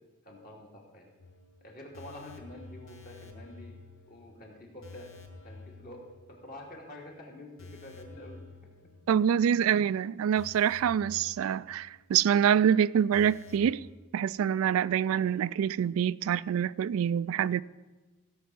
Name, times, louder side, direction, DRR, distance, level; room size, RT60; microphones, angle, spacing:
voice 1, 0.2-1.1 1.6-3.8 4.1-5.1 5.4-8.4 9.1-9.2, left 1 dB, 45° left, 2.6 m, -47 dB
sound 1, 1.2-6.7 7.0-7.2 7.6-9.5 9.8-9.9 10.4-12.3 12.6-12.7 13.1-13.8, left 3 dB, 75° left, 1.3 m, -50 dB
voice 2, 9.1-13.8 14.1-17.6, right 8 dB, 80° right, 0.3 m, -26 dB
16.5 x 5.6 x 7.6 m
head